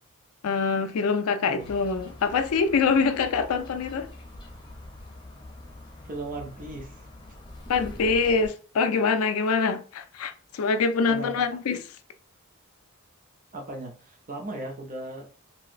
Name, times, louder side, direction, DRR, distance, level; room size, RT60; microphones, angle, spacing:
voice 1, 0.4-4.1 7.7-11.8, left 5 dB, 70° left, 0.4 m, -25 dB
sound 1, 1.6-8.5, left 1 dB, 20° left, 0.8 m, -44 dB
voice 2, 6.0-7.0 11.1-11.3 13.5-15.3, right 2 dB, 40° right, 0.7 m, -37 dB
3.1 x 2.8 x 2.5 m
head